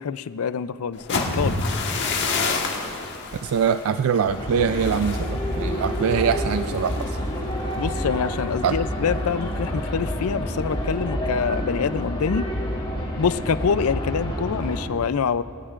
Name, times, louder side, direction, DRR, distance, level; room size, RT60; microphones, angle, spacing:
voice 1, 0.0-1.6 7.8-12.5 13.2-15.4, left 6 dB, 75° left, 15 dB, 0.4 m, -25 dB
sound 1, 0.9-8.8 9.2-9.5 9.8-10.2, left 3 dB, 55° left, 1.5 m, -30 dB
voice 2, 3.4-7.2 8.6-8.8, right 7 dB, 70° right, 11 dB, 0.3 m, -23 dB
sound 2, 4.2-14.9, equal, 25° left, 2.5 m, -28 dB
23.0 x 18.0 x 2.5 m, 2.4 s
head